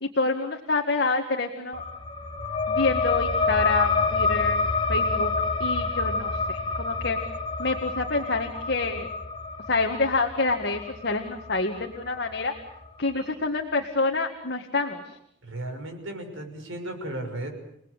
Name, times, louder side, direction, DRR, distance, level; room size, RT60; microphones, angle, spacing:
voice 1, 0.0-1.8 2.7-5.3 5.6-7.2 7.6-9.1 9.7-12.5 13.0-15.0, left 3 dB, 55° left, 3 dB, 2.0 m, -27 dB
sound 1, 1.7-12.9, left 4 dB, 25° left, 1.6 m, -28 dB
voice 2, 15.4-17.5, right 1 dB, 90° right, 5 dB, 6.2 m, -35 dB
30.0 x 19.5 x 8.3 m, 0.74 s
head